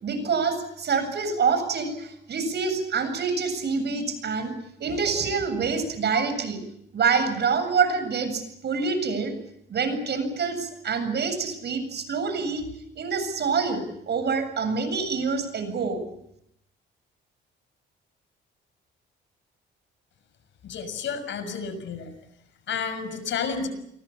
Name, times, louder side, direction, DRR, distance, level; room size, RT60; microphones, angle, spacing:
voice 1, 0.0-4.5 4.8-6.6 6.9-9.3 9.7-12.6 13.0-16.0, right 5 dB, 60° right, 10 dB, 7.6 m, -26 dB
voice 2, 20.6-22.1 22.7-23.7, left 6 dB, 70° left, 11 dB, 6.4 m, -31 dB
29.5 x 23.5 x 7.2 m, 0.77 s
cardioid pair, 90°, 20 cm